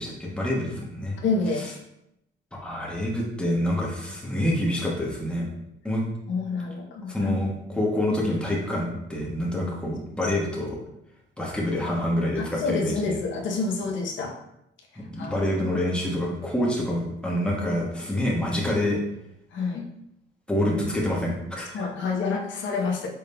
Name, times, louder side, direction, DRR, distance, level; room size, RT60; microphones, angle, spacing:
voice 1, 0.0-1.2 2.5-5.5 5.8-6.0 7.1-10.8 11.4-13.2 15.0-19.0 20.5-21.8, left 1 dB, 5° left, -3 dB, 1.2 m, -27 dB
voice 2, 1.2-1.7 6.3-7.4 10.2-10.3 12.4-14.3 14.9-15.4 19.5-19.9 21.7-23.1, left 4 dB, 75° left, 1 dB, 0.7 m, -28 dB
5.2 x 3.8 x 2.2 m, 0.82 s
cardioid pair, 90°, 20 cm